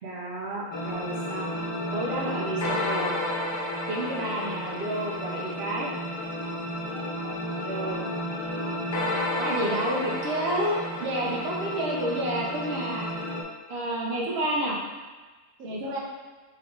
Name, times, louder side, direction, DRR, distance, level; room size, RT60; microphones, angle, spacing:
voice 1, 0.0-1.5 1.9-3.2 3.9-5.9 7.6-8.1 9.4-10.7 11.0-13.1 13.7-14.8 15.6-16.0, right 1 dB, 55° right, -4 dB, 1.1 m, -30 dB
sound 1, 0.7-13.4, left 1 dB, 35° left, 0.4 m, -31 dB
voice 2, 6.9-8.2 13.9-14.0 15.6-16.0, equal, 85° right, -2 dB, 1.0 m, -48 dB
3.3 x 3.2 x 3.8 m, 1.3 s
omnidirectional pair, 1.3 m